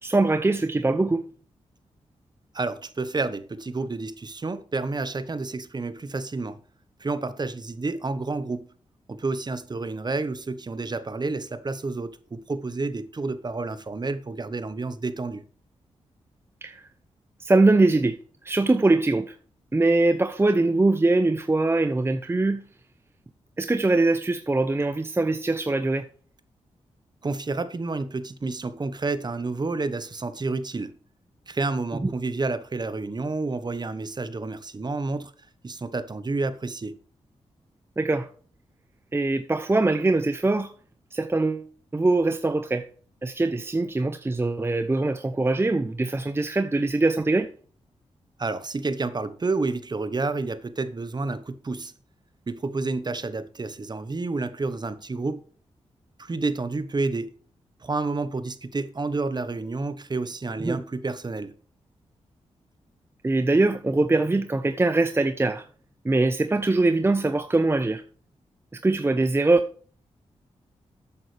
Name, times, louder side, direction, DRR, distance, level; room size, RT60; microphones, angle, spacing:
voice 1, 0.0-1.3 16.6-16.8 17.4-18.2 18.4-19.4 19.7-22.6 23.6-26.1 32.0-32.1 38.0-38.3 39.1-40.7 41.1-41.7 41.9-42.9 43.2-47.5 60.6-60.8 63.2-65.7 66.0-68.0 68.7-69.6, right 2 dB, 20° right, 0.7 m, -22 dB
voice 2, 2.5-6.6 7.0-8.7 9.1-15.4 27.2-30.9 31.5-35.3 35.6-37.0 48.4-51.9 52.5-55.4 56.2-57.3 57.8-61.5, right 3 dB, 35° right, 1.1 m, -30 dB
12.5 x 8.8 x 3.4 m
cardioid pair, 65°, 12 cm